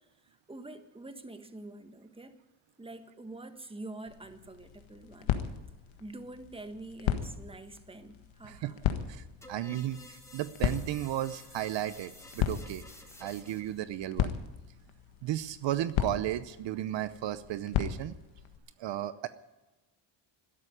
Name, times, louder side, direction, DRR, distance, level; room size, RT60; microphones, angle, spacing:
voice 1, 0.5-2.4 2.8-5.4 6.0-8.8, right 2 dB, 10° right, 1.5 m, -46 dB
sound 1, 4.1-18.6, left 10 dB, 75° left, 1.6 m, -36 dB
voice 2, 8.4-12.8 13.2-14.3 15.2-18.1 18.8-19.3, right 13 dB, 65° right, 0.8 m, -34 dB
sound 2, 9.4-13.8, left 1 dB, 5° left, 3.1 m, -52 dB
13.0 x 11.5 x 9.9 m
cardioid pair, 95°, 47 cm